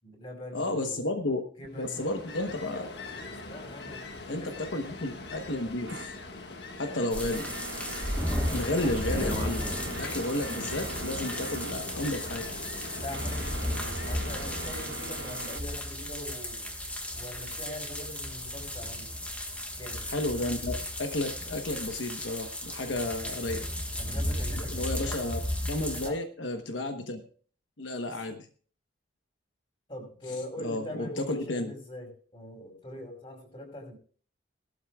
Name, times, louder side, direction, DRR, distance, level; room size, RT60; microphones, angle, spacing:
voice 1, 0.0-1.1 1.6-2.1 3.4-4.6 6.9-7.3 13.0-16.7 17.1-19.2 19.8-20.1 24.0-25.2 25.9-26.2 28.1-28.4 29.9-34.0, left 1 dB, 30° left, 2 dB, 5.7 m, -42 dB
voice 2, 0.5-1.4 1.7-2.9 4.3-6.1 6.8-7.5 8.5-12.4 20.1-23.7 24.7-27.2 27.8-28.5 30.6-31.7, left 2 dB, 80° left, 5 dB, 1.1 m, -32 dB
Ocean, 1.7-15.8, left 3 dB, 60° left, 1.7 m, -41 dB
sound 1, 5.9-15.6, right 4 dB, 65° right, 0.7 m, -43 dB
sound 2, 7.1-26.1, left 1 dB, 5° left, 1.3 m, -34 dB
18.0 x 12.5 x 2.3 m, 0.43 s
head